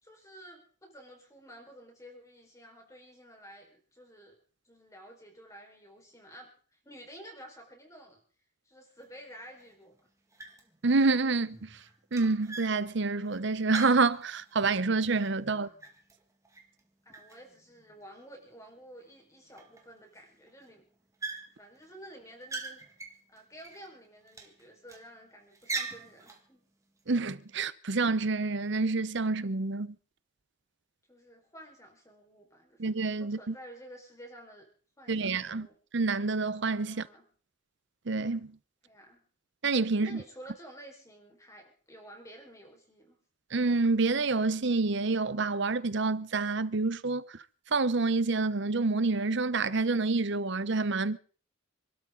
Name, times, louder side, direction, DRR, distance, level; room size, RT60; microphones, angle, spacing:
voice 1, 0.0-4.3 4.6-8.2 8.6-9.9 15.5-15.8 17.0-20.8 21.6-22.8 23.3-26.6 31.1-32.9 33.2-34.7 35.0-35.8 36.9-37.3 38.8-39.2 39.9-43.2, equal, 15° left, 4.7 m, -51 dB
sound 1, 9.0-9.1 9.6-10.0 10.3-10.8 11.1-14.7 15.1-16.8 17.1-18.1 18.7-18.8 19.0-19.1 19.5-20.2 20.5-20.7 21.2-21.8 22.2-23.9 24.3-25.1 25.5-26.5, right 4 dB, 15° right, 1.9 m, -42 dB
voice 2, 10.8-11.7 12.1-15.7 27.1-29.9 32.8-33.5 35.1-35.7 35.9-37.0 38.1-38.5 39.6-40.2 43.5-47.3 47.7-51.2, right 3 dB, 55° right, 0.8 m, -28 dB
27.0 x 12.5 x 3.9 m
head